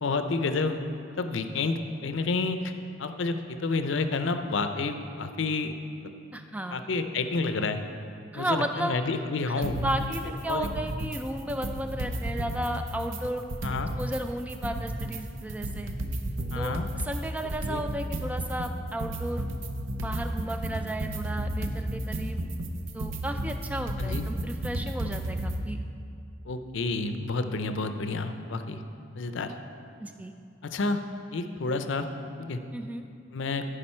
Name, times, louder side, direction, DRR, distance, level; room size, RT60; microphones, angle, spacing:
voice 1, 0.0-0.8 1.2-2.7 3.0-5.7 6.0-6.1 6.7-7.8 8.3-9.9 10.5-10.7 13.6-13.9 16.5-16.9 17.7-17.8 24.0-24.3 26.5-28.8 29.1-29.5 30.6-31.0 31.3-32.1 32.4-32.6 33.3-33.6, left 3 dB, 70° left, 8 dB, 0.5 m, -29 dB
voice 2, 6.3-6.8 8.3-9.0 9.5-13.4 14.0-15.9 16.6-19.5 20.0-22.4 22.9-25.8 30.0-30.3 32.7-33.0, right 1 dB, 5° right, 6 dB, 0.3 m, -34 dB
sound 1, 9.6-10.2 10.5-11.2 11.5-14.2 14.5-25.6, right 1 dB, 75° right, 0.7 m, -33 dB
15.0 x 5.0 x 4.3 m, 2.5 s
head